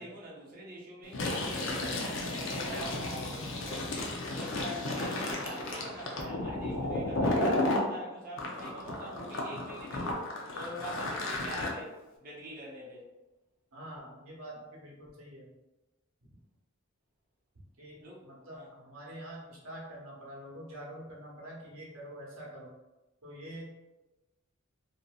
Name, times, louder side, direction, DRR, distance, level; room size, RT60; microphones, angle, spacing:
voice 1, 0.0-13.1 18.0-18.7, equal, 45° right, -5 dB, 0.6 m, -45 dB
Fill (with liquid), 1.0-7.9 8.4-11.7, left 2 dB, 65° left, 0.5 m, -33 dB
voice 2, 13.7-15.5 16.2-16.4 17.8-22.7 23.2-23.8, right 1 dB, 90° right, -3 dB, 0.9 m, -46 dB
2.7 x 2.5 x 2.3 m, 1.1 s
head